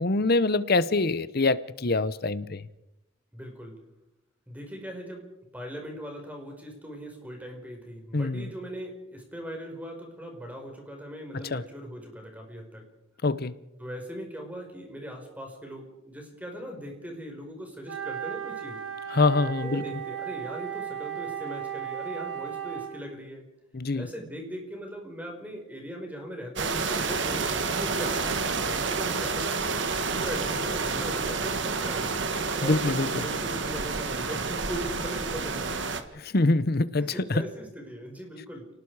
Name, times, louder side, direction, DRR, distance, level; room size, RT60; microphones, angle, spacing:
voice 1, 0.0-2.6 8.1-8.5 11.5-11.6 13.2-13.5 19.1-19.8 23.7-24.1 32.6-33.1 36.2-37.4, left 3 dB, 50° left, 0.8 m, -24 dB
voice 2, 3.3-3.7 4.5-5.3 5.5-12.8 13.8-18.8 19.6-23.4 23.9-29.6 30.0-32.1 32.5-35.7 37.0-38.7, equal, 10° right, 5.0 m, -39 dB
Wind instrument woodwind instrument, 17.8-23.1, right 9 dB, 90° right, 2.3 m, -35 dB
sound 1, 26.6-36.0, right 4 dB, 60° right, 1.6 m, -29 dB
29.0 x 19.0 x 4.9 m
head